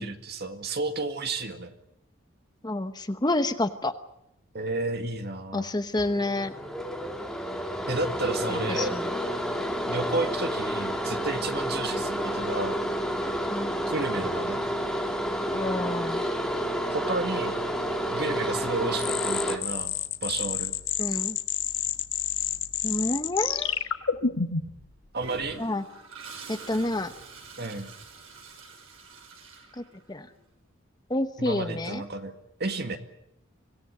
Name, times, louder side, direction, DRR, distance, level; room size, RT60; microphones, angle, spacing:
voice 1, 0.0-1.7 4.5-5.7 7.9-8.9 9.9-12.8 13.9-14.6 16.9-17.6 18.1-19.9 20.2-20.8 25.1-25.6 27.6-27.9 31.4-33.0, right 3 dB, 50° right, 6 dB, 2.1 m, -32 dB
voice 2, 2.6-3.9 5.5-6.5 8.7-9.1 11.8-11.9 13.5-13.7 15.5-16.2 21.0-21.4 22.8-23.7 25.6-25.8 26.5-27.1 29.8-29.9 30.1-30.3 31.1-32.0, left 1 dB, 20° left, 9 dB, 0.9 m, -29 dB
sound 1, 5.9-19.6, equal, ahead, 2.4 m, -30 dB
sound 2, 19.0-24.8, left 8 dB, 65° left, 1.7 m, -29 dB
Toilet flush, 25.2-30.3, right 3 dB, 80° right, 6.3 m, -45 dB
25.0 x 17.0 x 9.4 m, 0.83 s
head